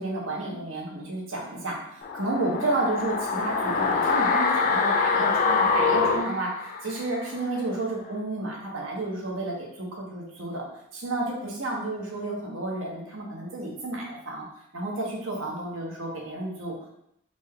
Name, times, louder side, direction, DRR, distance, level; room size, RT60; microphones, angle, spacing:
voice 1, 0.0-10.7 10.9-14.5 14.7-16.9, right 2 dB, 75° right, -2 dB, 1.0 m, -31 dB
sound 1, 2.0-7.1 7.4-7.5, left 4 dB, 40° left, 0.3 m, -24 dB
3.9 x 2.2 x 3.6 m, 0.75 s
head